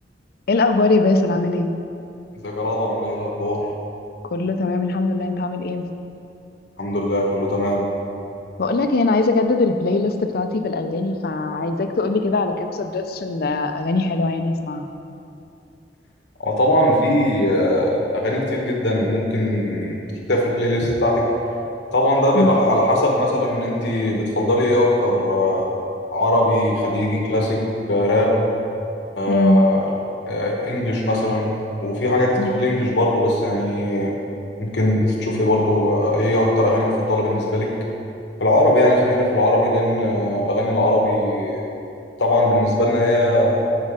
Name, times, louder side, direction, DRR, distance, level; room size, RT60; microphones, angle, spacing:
voice 1, 0.5-1.7 4.3-5.8 8.6-14.9 22.3-22.5 29.3-29.6 32.4-32.6, left 2 dB, 60° left, 7 dB, 0.5 m, -21 dB
voice 2, 2.4-3.6 6.8-7.8 16.4-20.0 20.3-21.3 21.9-25.6 26.1-27.6 27.9-28.4 29.2-29.9 30.3-31.5 31.8-34.1 34.6-37.7 38.4-41.6 42.2-43.6, left 1 dB, 85° left, -2 dB, 1.1 m, -20 dB
7.4 x 5.2 x 4.9 m, 2.6 s
head